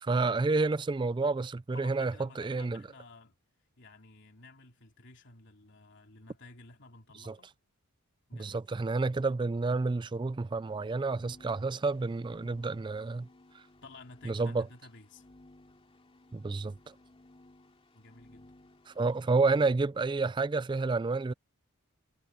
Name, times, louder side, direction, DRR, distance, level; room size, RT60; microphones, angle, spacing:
voice 1, 0.0-2.8 7.3-7.4 8.4-13.3 13.5-13.6 14.2-14.7 16.3-16.9 18.9-21.3, right 3 dB, 20° right, 0.3 m, -30 dB
voice 2, 1.7-3.4 3.8-7.6 8.3-8.6 13.8-15.3 17.9-18.6, left 3 dB, 55° left, 3.3 m, -53 dB
sound 1, 10.5-19.6, left 1 dB, 25° left, 2.6 m, -59 dB
head